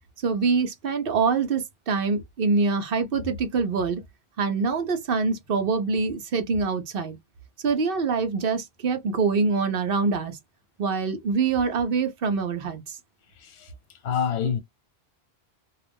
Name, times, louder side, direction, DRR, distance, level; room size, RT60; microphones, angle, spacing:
voice 1, 0.2-4.0 4.4-7.2 7.6-10.4 10.8-13.0, right 4 dB, 60° right, 0.9 m, -25 dB
voice 2, 13.4-13.7 14.0-14.6, left 7 dB, 85° left, 0.9 m, -27 dB
2.4 x 2.3 x 3.4 m
omnidirectional pair, 1.1 m